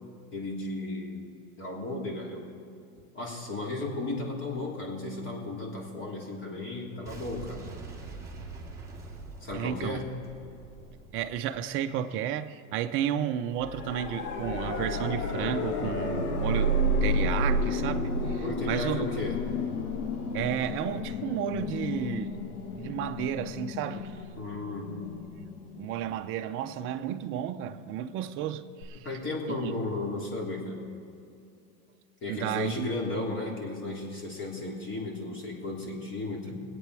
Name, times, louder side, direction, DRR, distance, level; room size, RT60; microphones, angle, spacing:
voice 1, 0.3-1.2 1.6-2.5 3.1-7.6 9.4-10.2 18.4-19.4 24.4-25.0 28.9-30.8 32.2-36.6, left 2 dB, 25° left, 3.2 m, -34 dB
Boom, 7.1-12.0, right 3 dB, 5° right, 1.7 m, -44 dB
voice 2, 9.5-10.0 11.1-16.7 17.0-19.1 20.3-22.4 22.7-24.2 25.4-25.5 25.8-29.1 29.6-29.7 32.3-32.9, right 10 dB, 30° right, 0.6 m, -32 dB
sound 1, 13.6-26.5 28.8-28.9, left 1 dB, 85° left, 1.7 m, -31 dB
23.0 x 8.6 x 4.8 m
hypercardioid pair, 130°, 44 cm